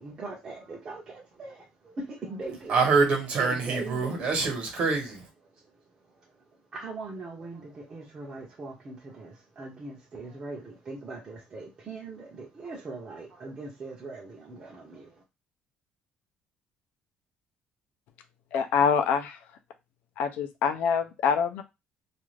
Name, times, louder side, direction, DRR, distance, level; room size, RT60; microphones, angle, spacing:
voice 1, 0.0-2.9 3.4-4.3 6.7-15.1, right 3 dB, 30° right, 0.6 m, -40 dB
voice 2, 2.7-5.2, right 4 dB, 50° right, 1.1 m, -25 dB
voice 3, 18.5-19.4 20.2-21.6, left 6 dB, 75° left, 0.5 m, -25 dB
2.5 x 2.4 x 3.2 m
cardioid pair, 165°, 3 cm